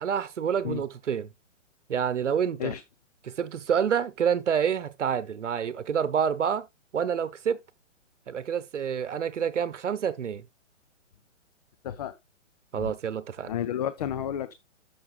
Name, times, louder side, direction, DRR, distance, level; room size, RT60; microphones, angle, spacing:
voice 1, 0.0-1.3 1.9-2.7 3.2-6.7 6.9-7.6 8.3-10.4 12.7-13.5, right 7 dB, 70° right, 1.0 m, -28 dB
voice 2, 11.8-12.2 12.8-12.9 13.4-14.5, left 10 dB, 30° left, 0.5 m, -31 dB
12.5 x 6.1 x 2.3 m
figure-of-eight pair, 125°, 38 cm